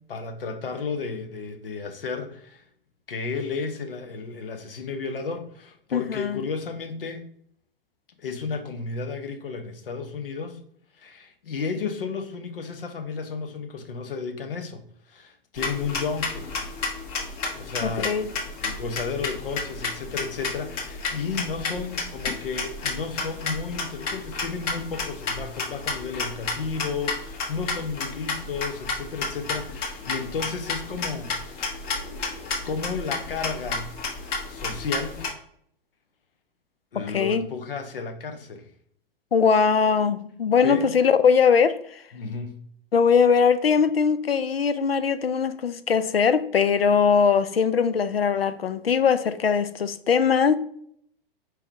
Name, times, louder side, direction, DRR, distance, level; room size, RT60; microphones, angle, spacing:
voice 1, 0.1-2.6 3.1-7.3 8.2-10.6 11.0-16.5 17.6-18.2 18.6-31.9 32.6-33.9 34.5-35.2 36.9-38.6 40.6-40.9 42.1-42.6, left 5 dB, 70° left, 0.9 m, -33 dB
voice 2, 5.9-6.4 17.8-18.3 37.0-37.5 39.3-42.0 42.9-50.5, left 6 dB, 85° left, 0.5 m, -21 dB
sound 1, 15.6-35.3, left 3 dB, 30° left, 1.1 m, -32 dB
4.5 x 3.4 x 3.4 m
figure-of-eight pair, 100°, 29 cm